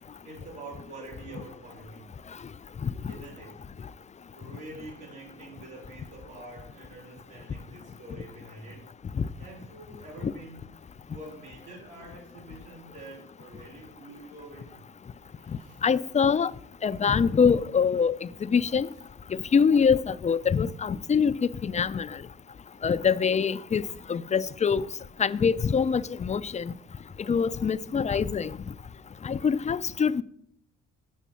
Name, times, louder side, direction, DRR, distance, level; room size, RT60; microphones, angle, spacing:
voice 1, 0.2-2.1 3.1-3.6 4.3-8.9 9.4-10.6 11.1-14.9 15.4-15.8 21.3-21.4 22.7-22.9 29.1-29.8, right 2 dB, 90° right, 4.7 m, -46 dB
voice 2, 15.8-16.5 16.8-18.9 19.5-22.2 22.8-23.8 24.1-24.9 25.2-26.7 27.3-28.6 29.2-30.2, left 6 dB, 25° left, 0.4 m, -24 dB
7.4 x 6.6 x 7.0 m
cardioid pair, 90°, 30 cm